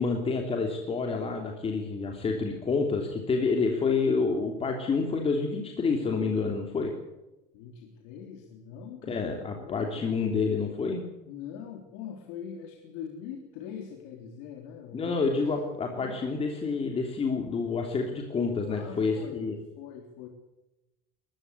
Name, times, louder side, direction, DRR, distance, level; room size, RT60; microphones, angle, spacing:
voice 1, 0.0-6.9 9.1-11.0 14.9-19.6, left 4 dB, 25° left, 3 dB, 3.1 m, -28 dB
voice 2, 7.5-9.2 9.6-10.1 11.3-15.2 15.9-16.2 18.7-19.4 19.8-20.3, left 8 dB, 75° left, 3 dB, 3.3 m, -42 dB
20.5 x 15.0 x 8.3 m, 0.99 s
cardioid pair, 130°, 21 cm